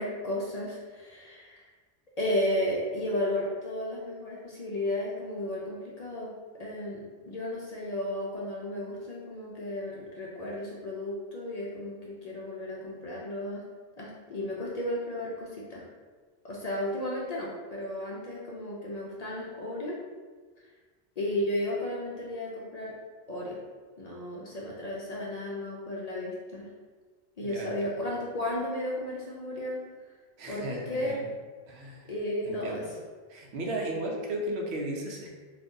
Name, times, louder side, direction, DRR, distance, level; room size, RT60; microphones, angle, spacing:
voice 1, 0.0-1.7 2.2-13.6 14.0-15.9 16.4-20.0 21.2-22.9 23.3-23.6 24.0-26.7 27.4-29.8 30.5-31.2 32.1-32.8, left 1 dB, 50° left, -4 dB, 0.5 m, -34 dB
voice 2, 27.4-28.0 30.4-31.3 31.7-32.1 32.4-32.9 33.3-35.3, right 1 dB, 85° right, 0 dB, 0.9 m, -35 dB
2.6 x 2.5 x 3.6 m, 1.5 s
omnidirectional pair, 1.1 m